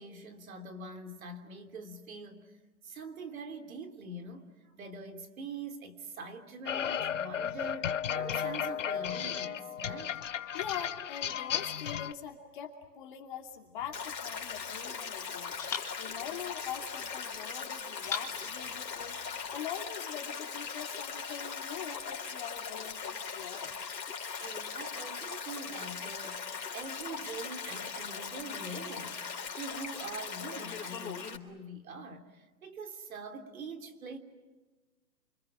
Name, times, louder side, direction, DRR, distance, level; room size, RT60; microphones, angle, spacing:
voice 1, 0.0-2.6 2.8-10.1 24.4-29.2 29.5-34.2, right 3 dB, 55° right, 7 dB, 3.4 m, -44 dB
sound 1, 6.7-12.1, left 8 dB, 50° left, 0.9 m, -34 dB
voice 2, 10.5-15.6 16.0-23.7, left 9 dB, 30° left, 3 dB, 2.7 m, -43 dB
sound 2, 13.8-15.0 15.6-17.2 18.0-19.6, left 7 dB, 5° left, 1.2 m, -43 dB
Stream, 13.9-31.4, left 6 dB, 80° left, 3.8 m, -40 dB
30.0 x 26.0 x 7.4 m, 1.2 s
hypercardioid pair, 165°, 50 cm